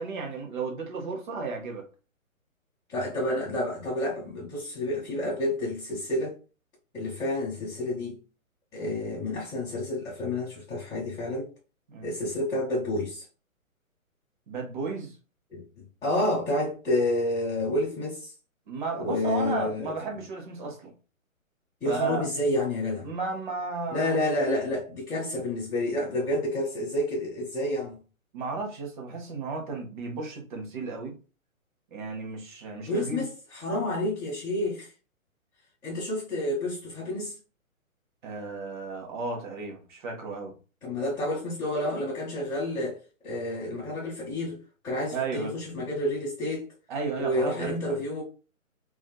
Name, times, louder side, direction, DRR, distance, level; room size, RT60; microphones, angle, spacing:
voice 1, 0.0-1.9 11.9-12.1 14.5-15.2 18.7-20.9 21.9-22.2 23.0-24.2 28.3-31.2 31.9-33.3 38.2-40.5 45.1-45.5 46.9-48.0, right 4 dB, 35° right, 0.8 m, -34 dB
voice 2, 2.9-6.3 6.9-8.2 8.7-11.5 12.0-13.2 15.5-15.6 16.0-18.3 19.0-19.9 21.8-23.0 23.9-28.0 32.9-33.3 33.6-34.9 35.8-37.3 40.8-44.6 44.8-46.7 47.2-48.2, left 1 dB, 5° left, 0.9 m, -29 dB
2.6 x 2.4 x 2.3 m
figure-of-eight pair, 135°, 42 cm